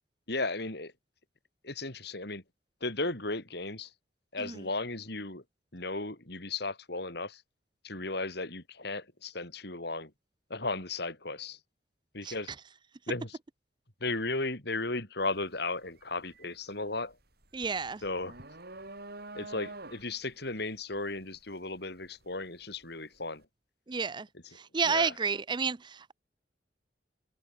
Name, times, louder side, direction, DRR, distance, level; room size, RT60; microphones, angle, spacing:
voice 1, 0.3-0.9 1.6-2.4 2.8-3.9 4.3-5.4 5.7-7.4 7.8-10.1 10.5-11.6 12.1-12.5 13.1-13.4 14.0-17.1 18.0-18.3 19.3-23.4 24.8-25.1, left 3 dB, 65° left, 6.1 m, -35 dB
sound 1, 15.2-15.5 15.8-22.8, right 2 dB, 60° right, 7.8 m, -47 dB
voice 2, 17.5-18.0 23.9-24.3 24.7-26.1, right 5 dB, 25° right, 0.5 m, -30 dB
head